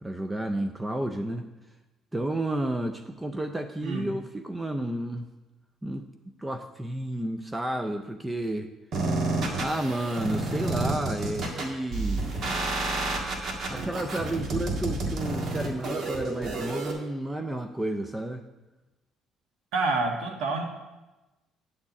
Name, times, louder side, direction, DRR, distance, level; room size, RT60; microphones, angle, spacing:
voice 1, 0.0-1.4 2.1-5.3 5.8-6.1 6.4-8.7 9.6-12.3 13.7-18.4, right 1 dB, 10° right, 7 dB, 0.5 m, -31 dB
sound 1, 8.9-16.9, right 2 dB, 55° right, 1.7 m, -30 dB
voice 2, 19.7-20.6, right 3 dB, 85° right, 2 dB, 1.5 m, -27 dB
9.7 x 4.4 x 7.1 m, 1.1 s
cardioid pair, 115°, 0 cm